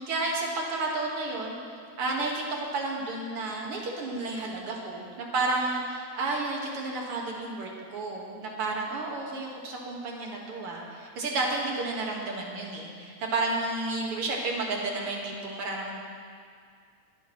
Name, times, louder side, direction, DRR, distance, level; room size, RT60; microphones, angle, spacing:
voice 1, 0.0-1.6 2.0-16.0, right 3 dB, 55° right, -1 dB, 2.0 m, -31 dB
22.0 x 10.5 x 3.0 m, 2.2 s
omnidirectional pair, 3.7 m